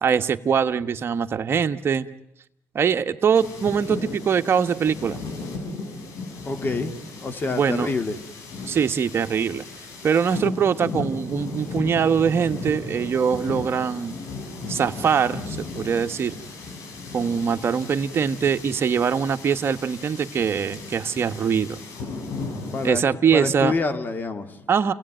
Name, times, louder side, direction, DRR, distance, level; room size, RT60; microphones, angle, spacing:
voice 1, 0.0-2.1 2.7-5.2 7.5-7.9 8.6-9.6 10.0-14.2 14.7-16.4 17.1-21.8 22.8-23.7 24.7-24.9, right 7 dB, 50° right, 8 dB, 1.2 m, -22 dB
sound 1, 3.4-22.9, left 3 dB, 80° left, 6.2 m, -36 dB
voice 2, 6.4-6.9 7.2-8.2 22.7-23.0 23.3-24.7, left 3 dB, 35° left, 8 dB, 2.5 m, -27 dB
27.5 x 17.5 x 9.0 m, 0.83 s
cardioid pair, 85°, 5 cm